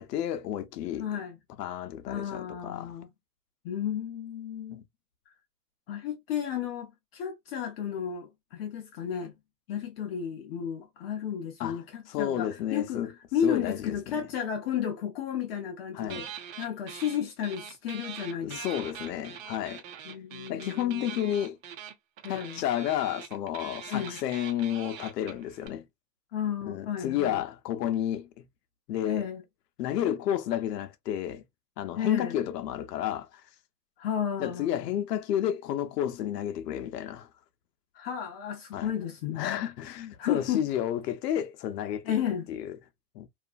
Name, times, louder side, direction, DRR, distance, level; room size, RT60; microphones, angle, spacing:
voice 1, 0.0-1.1 1.6-3.0 4.7-4.8 11.6-11.8 12.1-13.1 13.4-14.2 15.9-16.3 18.4-19.8 20.5-21.6 22.3-25.9 26.6-28.4 28.9-29.3 29.8-31.4 31.8-33.3 34.4-37.3 38.7-38.9 39.3-42.2 42.5-42.8 43.1-43.3, left 11 dB, 80° left, 0.7 m, -31 dB
voice 2, 1.0-1.4 2.1-3.1 3.6-4.8 5.9-9.3 9.7-16.3 16.6-18.9 20.0-21.3 22.2-22.6 23.9-24.2 26.3-27.4 29.0-29.4 32.0-32.4 34.0-35.0 37.9-39.5 40.2-40.6 42.0-42.5, left 9 dB, 40° left, 0.5 m, -33 dB
sound 1, 16.1-17.2 17.4-25.7, right 9 dB, 55° right, 0.8 m, -43 dB
2.7 x 2.4 x 2.3 m
supercardioid pair, 145°, 48 cm